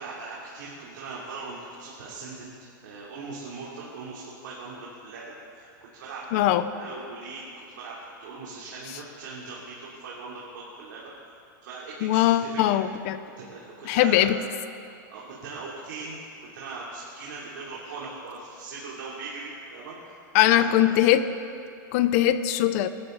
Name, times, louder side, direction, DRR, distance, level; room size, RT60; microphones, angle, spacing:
voice 1, 0.0-2.5 2.8-5.7 5.9-11.1 11.6-12.6 13.4-14.4 15.1-20.2 20.4-21.0, right 3 dB, 70° right, -6 dB, 3.5 m, -40 dB
voice 2, 6.3-6.6 12.0-13.2 13.8-14.4 20.3-21.3 21.9-22.9, left 13 dB, 45° left, 12 dB, 0.7 m, -21 dB
27.5 x 13.0 x 4.1 m, 2.5 s
supercardioid pair, 155°, 11 cm